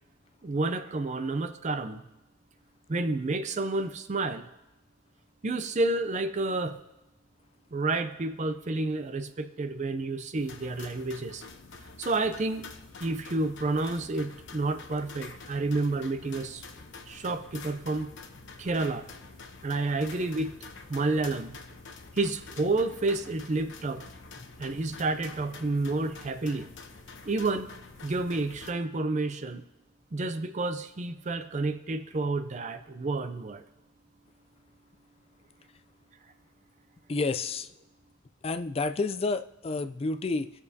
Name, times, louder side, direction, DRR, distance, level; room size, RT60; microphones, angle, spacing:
voice 1, 0.4-2.0 2.9-4.5 5.4-6.8 7.7-11.4 12.0-12.7 13.0-16.6 17.1-18.1 18.6-19.0 19.6-20.5 20.9-21.6 22.2-24.0 24.6-26.7 27.2-27.7 28.0-29.6 30.1-33.6, right 2 dB, 35° right, 9 dB, 0.5 m, -30 dB
sound 1, 10.3-28.7, left 4 dB, 60° left, 1.0 m, -47 dB
voice 2, 37.1-37.7 38.4-40.5, left 3 dB, 30° left, 9 dB, 0.4 m, -30 dB
19.5 x 7.0 x 2.7 m, 0.96 s
head